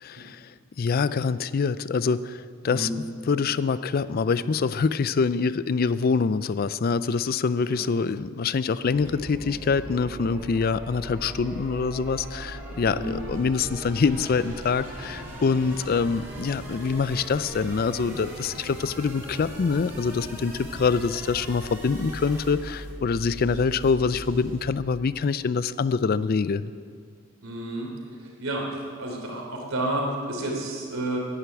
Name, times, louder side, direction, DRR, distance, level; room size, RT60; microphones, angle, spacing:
voice 1, 0.0-26.7, left 5 dB, 45° left, 16 dB, 0.4 m, -25 dB
sound 1, 8.8-22.9, right 1 dB, 10° right, 2.9 m, -44 dB
sound 2, 8.8-24.8, right 1 dB, 40° right, 3.0 m, -41 dB
voice 2, 12.9-13.2 27.4-27.9 28.4-28.6 29.0-31.2, right 1 dB, 70° right, -1 dB, 3.4 m, -30 dB
11.0 x 10.0 x 9.0 m, 2.1 s
head